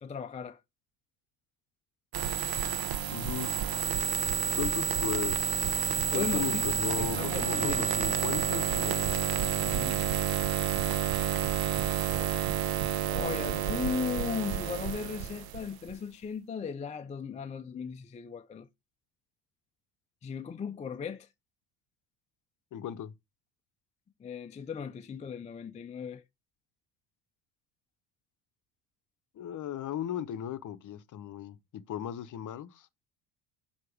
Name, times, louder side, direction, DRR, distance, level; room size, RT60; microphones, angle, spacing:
voice 1, 0.0-0.6 6.1-6.7 7.0-7.9 9.6-10.0 12.1-12.4 13.1-18.7 20.2-21.3 24.2-26.2, left 6 dB, 15° left, 0.4 m, -37 dB
sound 1, 2.1-15.9, right 9 dB, 50° right, 0.9 m, -30 dB
voice 2, 3.1-3.5 4.5-5.8 6.1-9.2 22.7-23.1 29.3-31.6 31.9-32.9, left 10 dB, 40° left, 0.7 m, -36 dB
7.5 x 2.9 x 4.7 m
supercardioid pair, 90°, 46 cm